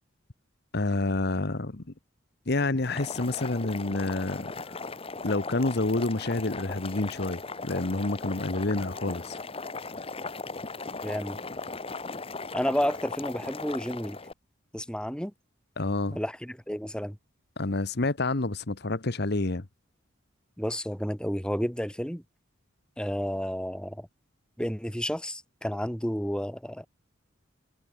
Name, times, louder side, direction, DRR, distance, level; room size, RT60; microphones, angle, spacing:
voice 1, 0.7-1.8 2.5-4.8 5.2-9.4 15.8-16.2 17.6-19.7, left 2 dB, 55° left, 1.2 m, -28 dB
Boiling, 2.8-14.3, left 3 dB, 30° left, 1.4 m, -38 dB
voice 2, 11.0-11.4 12.5-14.2 14.7-15.3 16.1-17.2 20.6-22.2 23.0-24.1 24.6-26.9, equal, 5° left, 3.7 m, -31 dB
head